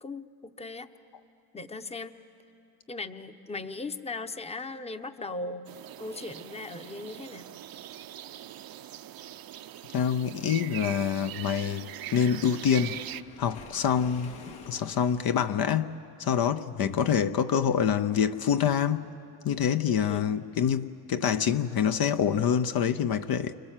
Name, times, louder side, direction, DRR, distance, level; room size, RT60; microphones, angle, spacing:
voice 1, 0.0-0.9 1.5-2.1 2.9-5.7 6.0-7.5 16.8-17.0 20.0-20.4, left 3 dB, 15° left, 0.9 m, -38 dB
sound 1, 5.7-13.2, right 12 dB, 50° right, 0.8 m, -42 dB
voice 2, 9.9-13.0 13.4-14.3 14.7-19.1 19.4-23.5, left 8 dB, 50° left, 0.8 m, -26 dB
Waves surf, 12.4-15.7, left 4 dB, 85° left, 2.6 m, -49 dB
29.5 x 26.0 x 7.5 m
supercardioid pair, 90°, 47 cm